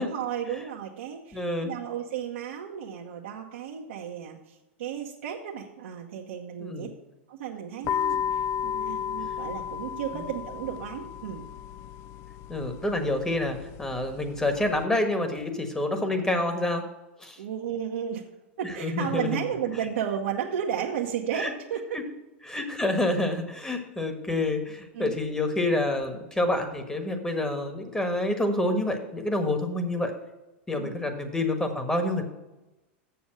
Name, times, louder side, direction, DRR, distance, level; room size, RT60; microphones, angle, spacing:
voice 1, 0.0-6.9 7.3-11.4 17.4-18.2 18.6-22.0 24.9-25.2 30.8-31.0, right 9 dB, 75° right, -2 dB, 1.0 m, -33 dB
voice 2, 1.3-1.7 6.6-6.9 10.1-10.2 12.5-16.8 17.2-17.4 18.8-19.3 21.4-21.5 22.4-30.1 30.7-32.2, left 1 dB, 10° left, 5 dB, 1.4 m, -28 dB
sound 1, 7.8-14.8, left 9 dB, 45° left, 0.4 m, -34 dB
7.0 x 7.0 x 6.4 m, 1.0 s
hypercardioid pair, 105°, 6 cm